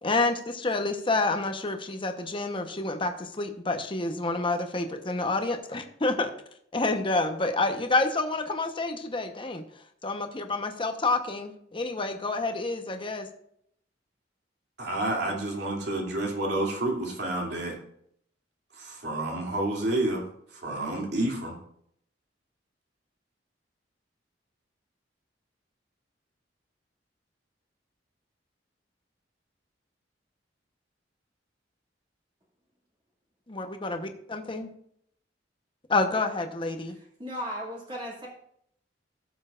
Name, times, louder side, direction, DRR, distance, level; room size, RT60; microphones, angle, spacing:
voice 1, 0.0-6.3 6.7-9.6 10.0-13.3 33.5-34.7 35.9-36.9, left 3 dB, 30° left, 5 dB, 1.0 m, -28 dB
voice 2, 14.8-17.7 18.8-20.2 20.6-21.5, right 1 dB, 65° right, -1 dB, 2.9 m, -29 dB
voice 3, 36.9-38.3, equal, 25° right, -4 dB, 2.4 m, -36 dB
17.0 x 7.2 x 2.5 m, 0.69 s
head